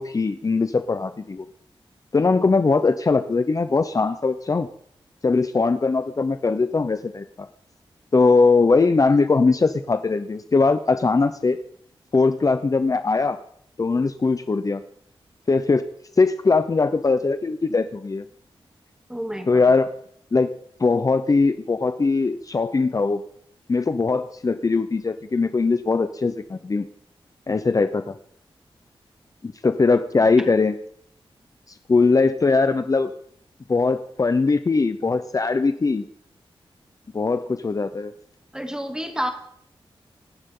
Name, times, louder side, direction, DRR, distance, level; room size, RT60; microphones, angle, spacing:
voice 1, 0.0-1.5 2.1-4.7 5.2-7.5 8.1-11.6 12.1-13.4 13.8-14.8 15.5-15.9 16.2-18.2 19.5-19.9 20.3-20.5 20.8-23.2 23.7-26.9 27.5-28.1 29.4-30.7 31.9-33.1 33.7-36.0 37.1-38.1, left 4 dB, 35° left, 10 dB, 0.7 m, -20 dB
voice 2, 19.1-19.7 38.5-39.3, equal, 5° right, 3 dB, 2.7 m, -29 dB
25.0 x 12.5 x 3.8 m, 0.66 s
wide cardioid pair, 110°, 10 cm